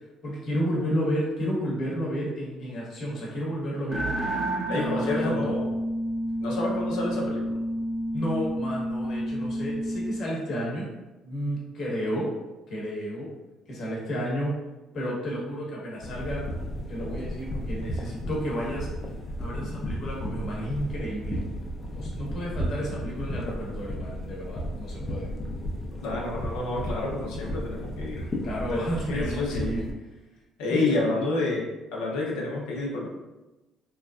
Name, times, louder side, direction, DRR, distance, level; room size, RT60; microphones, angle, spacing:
voice 1, 0.2-4.1 4.7-5.6 8.1-10.9 11.2-12.3 12.7-13.3 13.7-14.5 14.9-16.5 16.9-18.9 19.4-21.4 21.9-25.3 28.4-29.9 30.7-31.0, equal, 55° left, -3 dB, 1.0 m, -31 dB
sound 1, 3.9-10.3, equal, 20° right, 0.5 m, -30 dB
voice 2, 4.7-5.7 6.4-7.6 26.0-28.2 28.7-29.7 30.6-31.6 31.9-33.1, left 2 dB, 90° left, -3 dB, 0.7 m, -29 dB
sound 2, 16.0-29.9, equal, 30° left, 0.5 m, -34 dB
3.1 x 2.4 x 2.3 m, 1.1 s
supercardioid pair, 85°, 0 cm